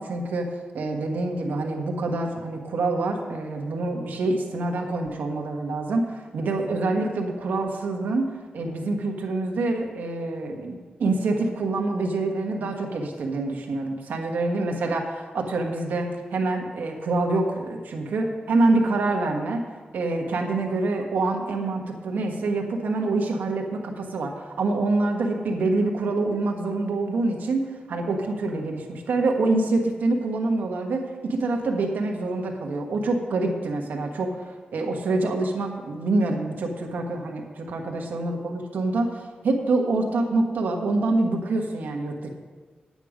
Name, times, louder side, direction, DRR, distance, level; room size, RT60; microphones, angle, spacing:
voice 1, 0.0-19.6 19.9-42.3, right 2 dB, 85° right, 2 dB, 1.5 m, -26 dB
10.0 x 9.0 x 5.1 m, 1.4 s
wide cardioid pair, 95°, 3 cm